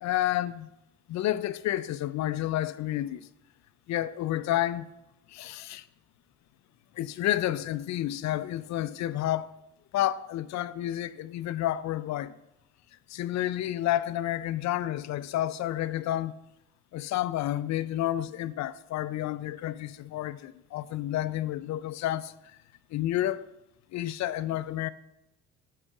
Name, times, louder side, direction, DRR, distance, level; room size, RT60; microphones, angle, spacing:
voice 1, 0.0-0.7 1.1-3.3 3.9-4.9 5.3-5.9 7.0-9.5 9.9-12.3 13.1-16.3 16.9-22.6 22.9-23.5 23.9-24.9, left 13 dB, 45° left, 0.4 m, -30 dB
8.6 x 8.4 x 2.4 m
hypercardioid pair, 55°, 38 cm